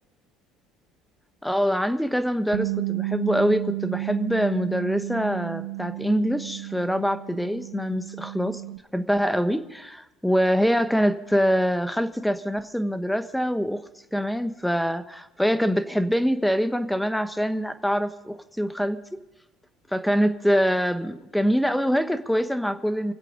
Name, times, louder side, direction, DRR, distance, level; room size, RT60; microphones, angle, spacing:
voice 1, 1.4-8.6 8.9-13.8 14.1-19.2 19.9-23.1, equal, ahead, 11 dB, 1.2 m, -24 dB
Bass guitar, 2.5-8.8, right 21 dB, 80° right, 0.7 m, -32 dB
24.5 x 8.2 x 5.3 m, 0.98 s
hypercardioid pair, 65°, 0 cm